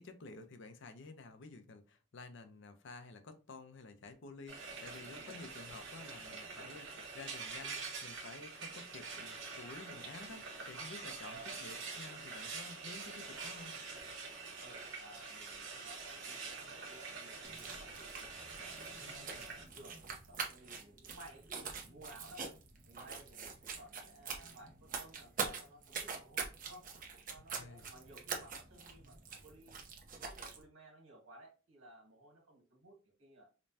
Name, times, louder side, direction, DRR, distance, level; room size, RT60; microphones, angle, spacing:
voice 1, 0.0-13.8 19.0-19.4 27.5-27.9, left 3 dB, 60° left, 8 dB, 0.5 m, -52 dB
Frying (food), 4.5-19.6, right 4 dB, 65° right, 1.1 m, -46 dB
voice 2, 11.0-11.7 14.6-18.3 18.6-22.4 22.8-26.9 27.1-29.2 29.4-29.7 30.3-33.5, right 1 dB, 85° right, 0 dB, 1.6 m, -57 dB
sound 1, 17.4-30.6, right 5 dB, 45° right, 0.8 m, -44 dB
5.1 x 2.2 x 2.7 m, 0.34 s
head